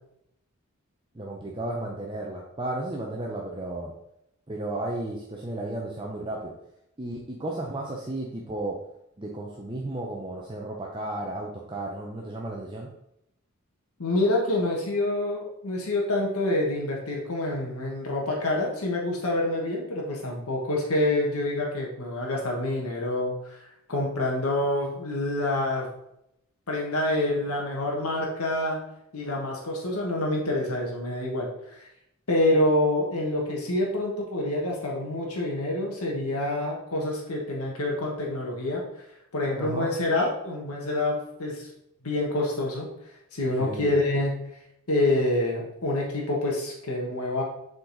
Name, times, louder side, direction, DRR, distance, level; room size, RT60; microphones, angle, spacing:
voice 1, 1.1-3.9 4.5-6.5 7.0-8.8 9.2-12.9 39.6-39.9 43.6-43.9, right 2 dB, 20° right, -1 dB, 0.6 m, -33 dB
voice 2, 14.0-25.9 26.7-28.8 29.1-31.5 32.3-38.8 39.3-41.7 42.0-42.9 43.3-44.4 44.9-47.4, left 1 dB, 80° left, -1 dB, 1.3 m, -27 dB
7.1 x 4.0 x 3.9 m, 0.80 s
head